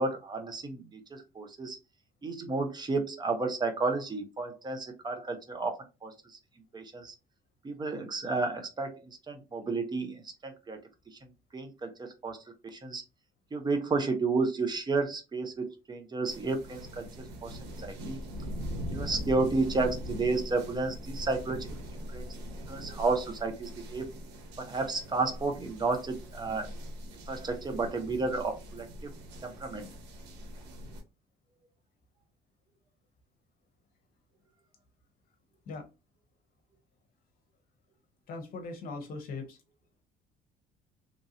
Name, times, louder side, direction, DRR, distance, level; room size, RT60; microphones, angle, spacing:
voice 1, 0.0-1.8 2.2-6.4 6.7-7.1 7.6-13.0 13.5-18.2 18.9-21.8 22.1-22.3 22.7-24.1 24.6-26.7 27.1-29.1 29.4-29.9, right 3 dB, 25° right, 5 dB, 0.8 m, -32 dB
sound 1, 16.2-31.0, equal, 90° right, 0.9 m, -41 dB
voice 2, 38.3-39.6, left 3 dB, 60° left, 4 dB, 0.9 m, -40 dB
3.0 x 2.6 x 2.6 m, 0.27 s
cardioid pair, 110°, 17 cm